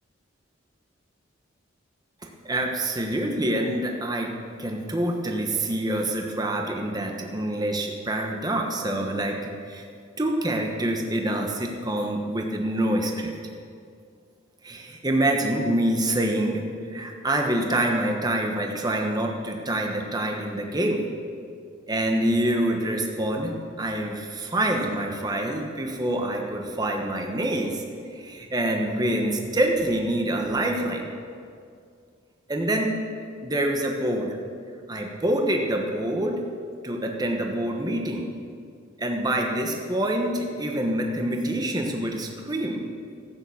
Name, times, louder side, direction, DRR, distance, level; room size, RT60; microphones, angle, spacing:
voice 1, 2.2-4.3 4.6-9.9 10.2-13.3 14.6-21.0 21.9-27.8 28.1-31.1 32.5-32.9 33.4-34.4 34.9-36.4 36.8-38.3 39.0-42.8, right 1 dB, 20° right, 1 dB, 1.1 m, -26 dB
14.0 x 9.0 x 7.0 m, 2.3 s
head